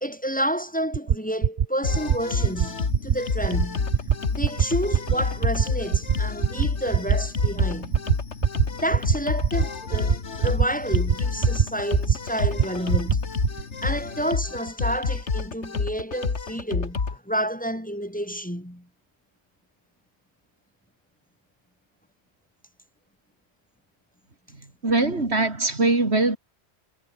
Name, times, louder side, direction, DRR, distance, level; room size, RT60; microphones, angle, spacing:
voice 1, 0.0-3.9 4.3-7.9 8.8-13.2 13.8-18.9, equal, 5° left, 3.1 m, -30 dB
sound 1, 0.9-1.1 1.4-1.7 1.9-2.2 2.4-2.6 2.9-3.1 3.4-3.6 3.9-4.1 4.4-4.6 4.9-5.1 5.4-5.6 5.9-6.1 6.4-6.6 6.9-7.1 7.4-7.6 7.9-8.1 8.4-8.6 8.9-9.1 9.4-9.6 9.9-10.1 10.4-10.6 10.9-11.1 11.4-11.6 11.9-12.1 12.4-12.6 12.9-13.1 13.4-13.6, right 8 dB, 50° right, 0.8 m, -20 dB
sound 2, 1.8-17.2, left 4 dB, 85° left, 2.2 m, -29 dB
voice 2, 24.8-26.4, right 2 dB, 75° right, 3.8 m, -22 dB
omnidirectional pair, 1.1 m